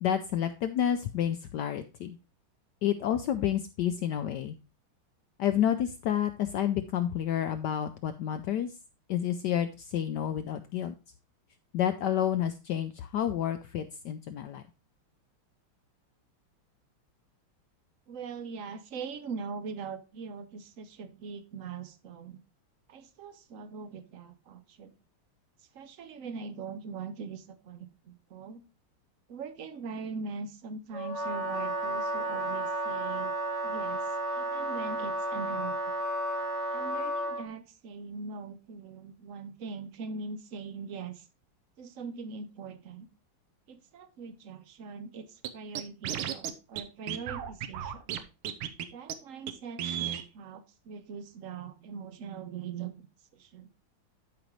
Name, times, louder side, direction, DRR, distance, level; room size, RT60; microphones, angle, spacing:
voice 1, 0.0-2.2 2.8-4.6 5.4-8.8 9.1-10.9 11.7-14.6, left 10 dB, 75° left, 9 dB, 0.9 m, -29 dB
voice 2, 18.1-22.4 22.9-25.0 25.7-28.6 29.3-33.3 33.6-35.8 36.7-41.3 41.8-43.1 43.7-48.2 48.9-52.9 53.3-53.7, right 5 dB, 65° right, 9 dB, 0.8 m, -41 dB
Wind instrument woodwind instrument, 30.9-37.4, right 1 dB, ahead, 3.1 m, -32 dB
Scratching (performance technique), 45.4-45.5 45.8-46.5 46.8-46.9 47.1-48.2 48.4-48.8 49.1-49.2 49.5-49.6 49.8-50.2, right 10 dB, 85° right, 1.6 m, -33 dB
12.0 x 5.2 x 3.1 m, 0.30 s
omnidirectional pair, 2.3 m